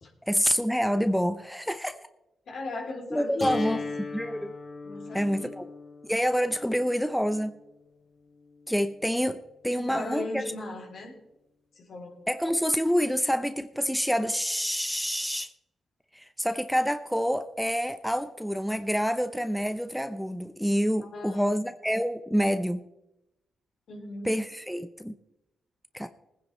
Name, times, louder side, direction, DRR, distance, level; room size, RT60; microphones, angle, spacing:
voice 1, 0.3-2.0 3.1-3.8 4.1-4.5 5.1-5.6 6.1-7.6 8.7-10.4 12.3-15.5 16.1-22.8 24.2-25.1 25.9-26.1, equal, ahead, 9 dB, 0.7 m, -27 dB
voice 2, 2.5-3.8 4.8-5.5 9.7-11.2 11.7-12.2 21.0-21.6 23.9-24.4, left 2 dB, 70° left, 0 dB, 3.3 m, -37 dB
sound 1, 3.4-9.4, left 3 dB, 45° left, 2.7 m, -39 dB
20.0 x 10.0 x 3.2 m, 0.92 s
supercardioid pair, 55°, 0 cm